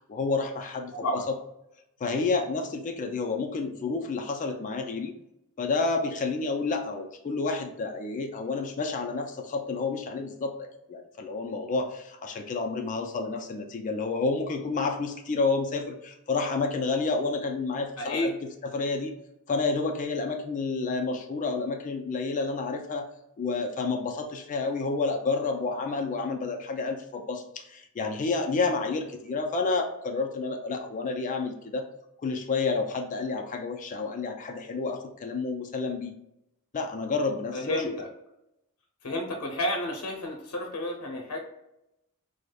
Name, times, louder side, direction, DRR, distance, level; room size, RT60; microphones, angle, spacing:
voice 1, 0.1-1.3 2.0-5.1 5.6-18.3 18.7-19.1 19.5-23.1 23.4-31.8 32.2-36.1 36.7-37.9, left 3 dB, 35° left, 4 dB, 0.4 m, -30 dB
voice 2, 0.9-1.3 18.0-18.3 37.5-38.1 39.0-41.4, left 1 dB, 80° left, 2 dB, 0.6 m, -31 dB
4.8 x 2.0 x 2.2 m, 0.85 s
head